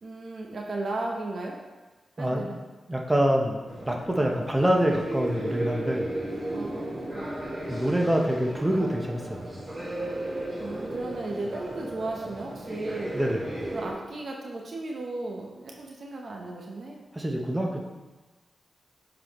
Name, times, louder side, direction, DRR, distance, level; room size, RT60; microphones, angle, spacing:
voice 1, 0.0-1.6 2.2-2.6 6.5-7.3 10.4-13.2 13.7-17.0, right 2 dB, 65° right, 0 dB, 0.8 m, -35 dB
voice 2, 2.2-2.5 2.9-6.1 7.7-9.4 13.1-13.5 17.1-17.9, right 1 dB, 20° right, 1 dB, 0.9 m, -26 dB
sound 1, 3.6-13.9, right 1 dB, 45° right, 1.9 m, -35 dB
7.5 x 4.1 x 3.1 m, 1.2 s
cardioid pair, 45°, 0 cm